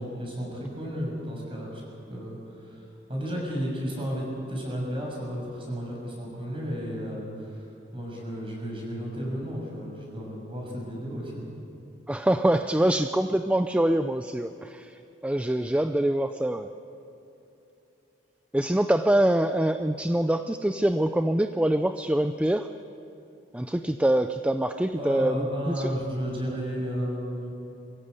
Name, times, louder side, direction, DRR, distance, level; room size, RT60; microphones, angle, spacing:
voice 1, 0.0-1.8 2.1-11.4 24.9-27.5, equal, 30° right, -1 dB, 6.6 m, -33 dB
voice 2, 12.1-16.7 18.5-22.7 23.5-26.0, right 1 dB, 5° right, 9 dB, 0.5 m, -25 dB
23.5 x 15.5 x 8.2 m, 3.0 s
head